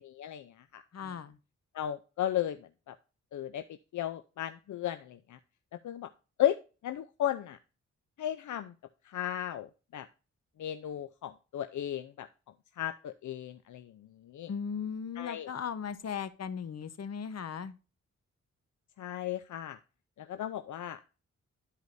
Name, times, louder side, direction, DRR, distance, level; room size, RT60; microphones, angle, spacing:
voice 1, 0.0-0.8 1.7-2.9 3.3-3.6 3.9-5.4 5.8-6.1 6.4-6.6 6.8-7.6 8.2-8.7 9.0-10.1 10.6-12.3 12.8-14.5 15.2-15.5 19.0-19.8 20.2-21.0, left 11 dB, 75° left, 10 dB, 0.6 m, -35 dB
voice 2, 0.9-1.4 14.5-17.8, left 7 dB, 60° left, 12 dB, 1.0 m, -37 dB
12.5 x 4.7 x 2.6 m, 0.33 s
cardioid pair, 80°, 30 cm